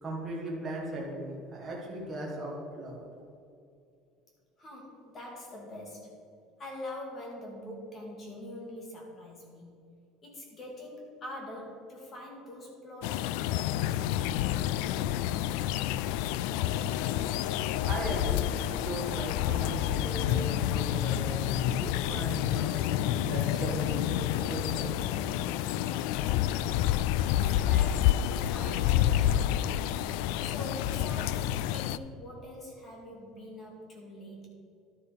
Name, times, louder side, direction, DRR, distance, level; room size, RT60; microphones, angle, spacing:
voice 1, 0.0-3.0 17.4-22.8 23.2-24.1 24.4-25.0, right 1 dB, 15° right, -4 dB, 1.6 m, -38 dB
voice 2, 4.6-6.2 6.6-9.8 10.2-14.1 27.2-29.7 30.4-34.5, left 1 dB, 20° left, -1 dB, 2.1 m, -44 dB
sound 1, 13.0-32.0, left 12 dB, 70° left, 0.3 m, -29 dB
11.5 x 6.9 x 5.1 m, 2.5 s
cardioid pair, 175°, 0 cm